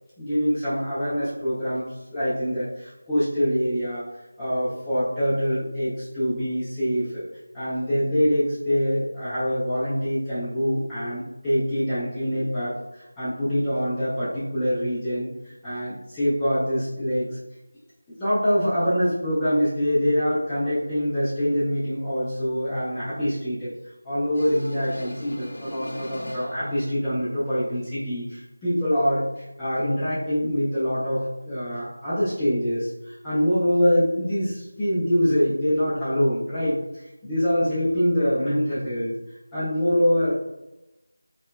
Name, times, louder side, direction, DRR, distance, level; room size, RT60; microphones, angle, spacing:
voice 1, 0.2-1.8 2.1-4.1 4.4-7.3 7.5-15.3 15.6-17.4 18.2-23.7 24.0-39.1 39.5-40.3, equal, 5° left, -14 dB, 0.3 m, -24 dB
sound 1, 24.3-26.8, left 1 dB, 60° left, 0.6 m, -39 dB
4.1 x 2.8 x 2.2 m, 0.96 s
figure-of-eight pair, 180°, 0 cm